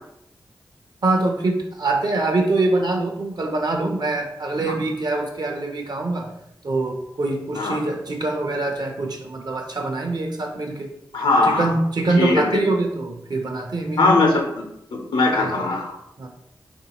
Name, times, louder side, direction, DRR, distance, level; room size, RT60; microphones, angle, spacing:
voice 1, 1.0-6.3 6.6-10.9 11.5-14.0 15.4-15.7 16.2-16.3, right 2 dB, 55° right, 3 dB, 0.7 m, -24 dB
voice 2, 11.1-11.7 12.2-12.4 14.0-14.5 14.9-16.0, left 2 dB, 85° left, 1 dB, 0.7 m, -19 dB
3.9 x 2.6 x 2.9 m, 0.80 s
cardioid pair, 45°, 8 cm